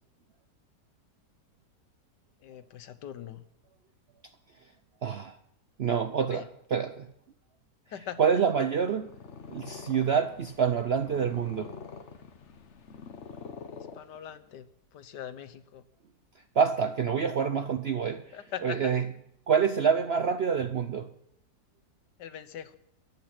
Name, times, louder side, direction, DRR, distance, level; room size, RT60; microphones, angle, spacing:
voice 1, 2.4-3.4 6.2-6.5 7.9-8.2 13.9-14.7 14.9-15.8 18.3-19.0 22.2-22.8, left 9 dB, 80° left, 13 dB, 1.6 m, -41 dB
voice 2, 5.0-5.4 5.8-7.1 8.2-9.1 9.5-11.7 16.5-19.0 19.5-21.1, right 6 dB, 60° right, 9 dB, 0.6 m, -27 dB
Purr, 8.9-14.5, left 5 dB, 45° left, 1.2 m, -46 dB
22.5 x 9.0 x 6.0 m, 0.76 s
omnidirectional pair, 1.8 m